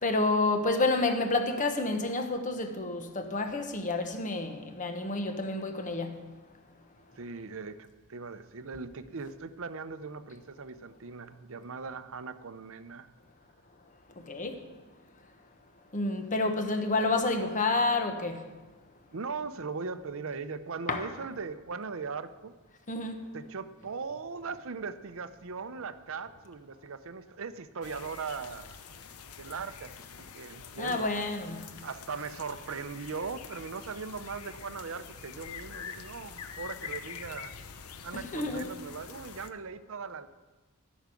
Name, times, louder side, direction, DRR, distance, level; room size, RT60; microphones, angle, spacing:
voice 1, 0.0-6.2 14.3-14.6 15.9-18.4 20.9-21.0 22.9-23.2 30.8-31.6 38.1-38.8, left 2 dB, 35° left, 1.1 m, -29 dB
voice 2, 7.2-13.1 19.1-22.5 23.3-28.8 29.4-29.9 30.3-31.2 31.8-37.5 38.0-40.3, right 5 dB, 60° right, 0.7 m, -39 dB
sound 1, 27.8-39.5, left 6 dB, 80° left, 0.8 m, -45 dB
14.0 x 6.3 x 8.3 m
head